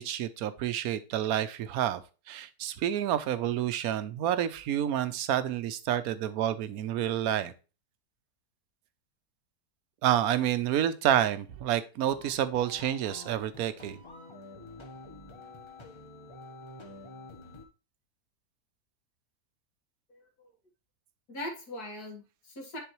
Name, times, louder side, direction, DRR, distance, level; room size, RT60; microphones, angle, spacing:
voice 1, 0.0-2.0 2.3-7.5 10.0-14.0, right 11 dB, 70° right, 12 dB, 1.1 m, -29 dB
sound 1, 12.0-17.6, left 2 dB, 20° left, 0.9 m, -48 dB
voice 2, 20.1-20.5 21.3-22.8, left 1 dB, 70° left, 1 dB, 2.4 m, -41 dB
10.0 x 4.0 x 3.1 m, 0.33 s
omnidirectional pair, 1.7 m